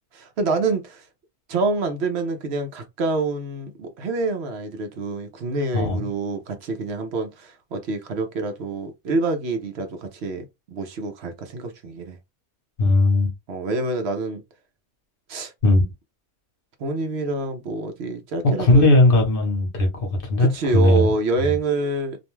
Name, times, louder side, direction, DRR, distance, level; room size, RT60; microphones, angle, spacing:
voice 1, 0.1-1.0 1.5-10.4 10.7-12.2 13.5-14.4 15.3-15.5 16.8-18.9 20.4-22.2, right 3 dB, 65° right, 0.8 m, -26 dB
voice 2, 12.8-13.3 15.6-15.8 18.6-21.1, left 2 dB, 50° left, 0.9 m, -18 dB
2.5 x 2.2 x 3.0 m
omnidirectional pair, 1.3 m